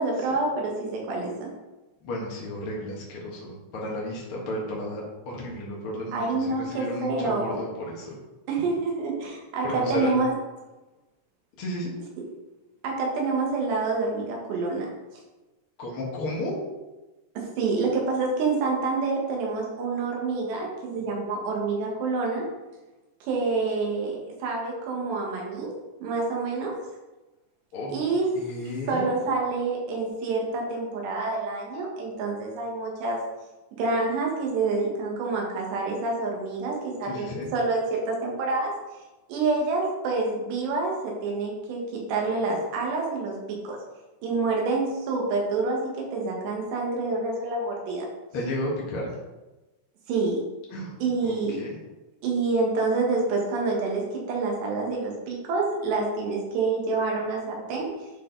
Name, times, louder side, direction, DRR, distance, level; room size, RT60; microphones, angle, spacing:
voice 1, 0.0-1.5 6.1-7.6 8.5-10.3 12.8-14.9 17.4-22.4 23.2-25.7 26.0-26.8 27.9-28.3 28.9-33.2 33.8-38.7 39.3-43.4 43.6-43.8 44.2-48.1 50.1-50.4 51.0-51.6 52.2-57.9, right 3 dB, 80° right, -1 dB, 3.7 m, -27 dB
voice 2, 2.0-8.1 9.6-10.1 11.6-11.9 15.8-16.6 27.7-28.0 28.3-29.1 37.0-37.5 48.3-49.1 50.7-51.8, left 1 dB, 60° left, -3 dB, 1.4 m, -33 dB
11.0 x 4.2 x 4.0 m, 1.1 s
omnidirectional pair, 4.9 m